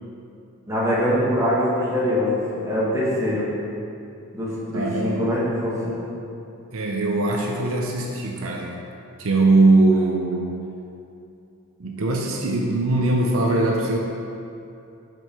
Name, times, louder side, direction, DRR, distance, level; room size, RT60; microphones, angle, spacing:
voice 1, 0.7-3.5 4.3-5.9, equal, 15° right, -8 dB, 1.4 m, -23 dB
voice 2, 4.7-5.2 6.7-8.7 9.2-10.6 11.8-14.0, right 2 dB, 70° right, 0 dB, 0.6 m, -21 dB
6.2 x 5.3 x 4.4 m, 2.6 s
head